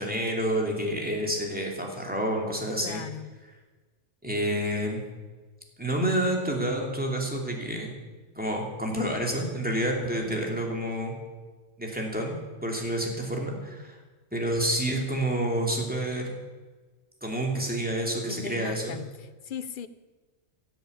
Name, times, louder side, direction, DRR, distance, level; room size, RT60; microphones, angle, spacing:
voice 1, 0.0-3.0 4.2-5.0 5.8-7.9 8.3-11.1 11.8-14.0 14.3-16.3 17.2-19.0, right 1 dB, 5° right, 0 dB, 2.8 m, -29 dB
voice 2, 2.8-3.3 18.3-19.9, left 7 dB, 50° left, 13 dB, 0.8 m, -38 dB
16.5 x 7.9 x 8.6 m, 1.3 s
omnidirectional pair, 1.2 m